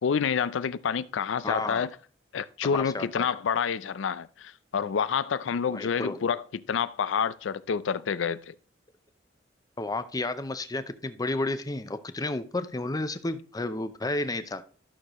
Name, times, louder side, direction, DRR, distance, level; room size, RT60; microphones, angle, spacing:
voice 1, 0.0-1.9 2.3-8.5, left 6 dB, 85° left, 0.4 m, -28 dB
voice 2, 1.4-1.9 2.6-3.3 5.7-6.2 9.8-14.6, left 2 dB, 20° left, 0.6 m, -32 dB
12.0 x 6.5 x 3.0 m
head